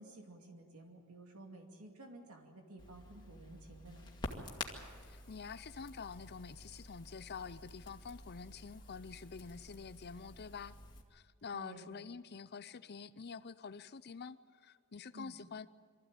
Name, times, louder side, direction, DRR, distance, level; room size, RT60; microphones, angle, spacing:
voice 1, 0.0-4.0 11.5-11.9 15.1-15.4, right 2 dB, 80° right, 2 dB, 2.5 m, -53 dB
Crackle, 2.8-11.0, left 2 dB, 20° left, 2.1 m, -49 dB
voice 2, 5.0-10.8 11.1-15.7, left 5 dB, 50° left, 15 dB, 0.6 m, -47 dB
24.0 x 14.5 x 9.0 m, 2.1 s
head